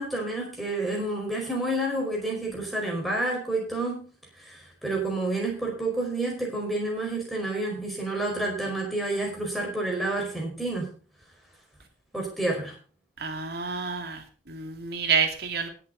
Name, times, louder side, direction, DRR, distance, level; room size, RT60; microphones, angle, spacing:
voice 1, 0.0-4.1 4.4-10.9 12.1-12.7, right 2 dB, ahead, -1 dB, 4.8 m, -29 dB
voice 2, 13.2-15.7, right 6 dB, 55° right, 4 dB, 2.5 m, -29 dB
19.0 x 7.7 x 4.1 m, 0.39 s
head